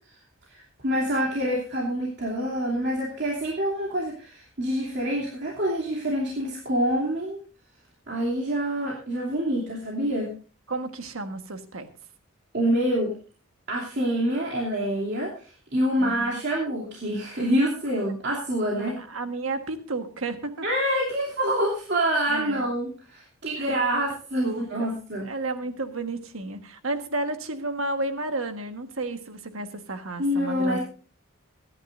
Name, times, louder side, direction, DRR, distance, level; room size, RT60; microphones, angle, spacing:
voice 1, 0.5-7.4 8.1-10.3 12.5-13.1 13.7-19.0 20.6-25.3 30.2-30.8, equal, 50° right, -3 dB, 2.9 m, -26 dB
voice 2, 10.7-11.9 16.0-16.4 18.8-20.5 22.3-22.7 23.6-24.0 24.4-24.9 25.2-30.8, right 2 dB, 70° right, 7 dB, 1.4 m, -32 dB
23.0 x 10.5 x 2.6 m, 0.39 s
head